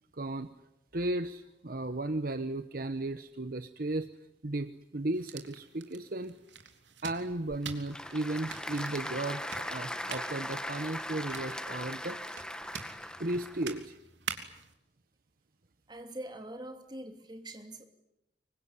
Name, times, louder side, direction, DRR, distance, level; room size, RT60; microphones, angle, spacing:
voice 1, 0.1-0.5 0.9-4.1 4.4-6.3 7.0-12.4 13.2-14.0, right 2 dB, 50° right, 10 dB, 1.0 m, -35 dB
sound 1, 5.1-14.7, right 7 dB, 80° right, 3.2 m, -46 dB
Applause / Crowd, 7.3-13.8, left 1 dB, 5° left, 1.6 m, -39 dB
voice 2, 15.9-17.9, right 1 dB, 25° right, 5 dB, 3.0 m, -43 dB
25.5 x 23.5 x 9.8 m, 0.89 s
head